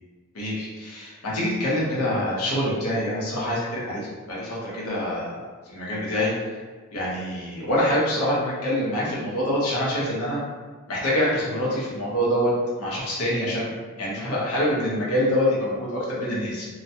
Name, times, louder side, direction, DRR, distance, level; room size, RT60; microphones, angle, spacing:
voice 1, 0.3-6.3 6.9-10.4 10.9-12.5 12.8-13.7 14.0-16.7, equal, 85° left, -6 dB, 0.9 m, -25 dB
2.9 x 2.2 x 2.7 m, 1.5 s
head